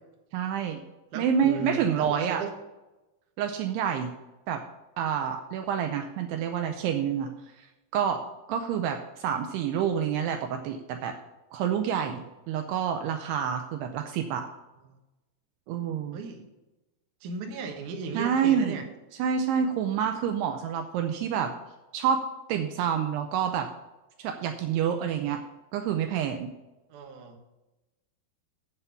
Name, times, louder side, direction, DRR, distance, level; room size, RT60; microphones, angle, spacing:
voice 1, 0.3-0.8 1.2-2.4 3.4-4.1 4.5-4.6 5.0-7.3 7.6-7.7 7.9-8.2 8.5-11.2 11.5-14.5 15.7-16.2 18.2-18.8 19.2-21.5 21.9-22.2 22.5-23.7 24.2-25.4 25.7-26.5, right 8 dB, 80° right, 6 dB, 2.6 m, -28 dB
voice 2, 1.1-2.5 14.8-15.0 16.1-16.4 17.2-18.8 26.9-27.4, right 4 dB, 65° right, 3 dB, 2.1 m, -37 dB
8.2 x 7.7 x 7.0 m, 1.0 s
omnidirectional pair, 5.1 m